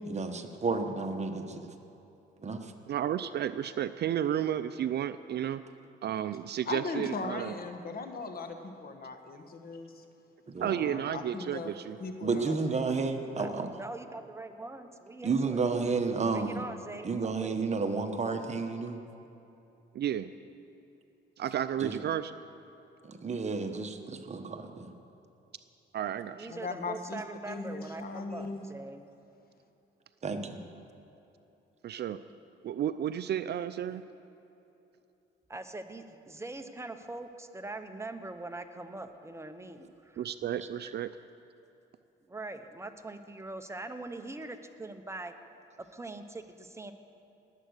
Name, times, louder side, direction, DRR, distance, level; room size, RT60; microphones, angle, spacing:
voice 1, 0.0-1.7 2.4-2.7 10.5-10.7 12.2-13.8 15.2-16.6 17.0-19.0 21.8-22.0 23.0-24.9 30.2-30.6 40.6-40.9, right 4 dB, 35° right, 5 dB, 1.3 m, -32 dB
voice 2, 2.9-5.6 6.0-7.5 10.6-12.0 19.9-20.3 21.4-22.3 25.9-26.5 31.8-32.2 32.6-34.0 40.2-41.1, right 10 dB, 55° right, 12 dB, 0.5 m, -32 dB
voice 3, 6.7-10.0 10.7-11.7 12.0-12.9 26.5-28.6, left 3 dB, 50° left, 6 dB, 1.4 m, -39 dB
voice 4, 13.4-15.6 16.3-17.6 26.3-29.1 35.5-40.2 42.3-45.3 45.9-46.9, right 2 dB, 15° right, 7 dB, 1.0 m, -42 dB
19.5 x 8.2 x 6.6 m, 3.0 s
cardioid pair, 90°, 20 cm